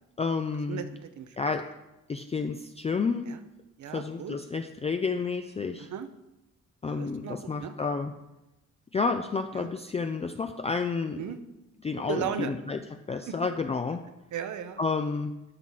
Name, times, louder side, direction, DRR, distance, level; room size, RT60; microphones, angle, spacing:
voice 1, 0.2-0.8 1.4-1.7 2.1-3.3 3.9-5.9 6.8-8.1 8.9-11.2 11.8-14.0 14.8-15.3, left 4 dB, 20° left, 6 dB, 0.4 m, -30 dB
voice 2, 0.7-1.6 3.3-3.4 3.8-4.4 5.8-6.1 6.8-7.7 9.5-9.7 11.2-11.4 12.1-12.5 13.3-13.4 14.3-14.8, right 8 dB, 65° right, 10 dB, 0.9 m, -36 dB
11.0 x 6.0 x 4.0 m, 0.95 s
cardioid pair, 120°, 31 cm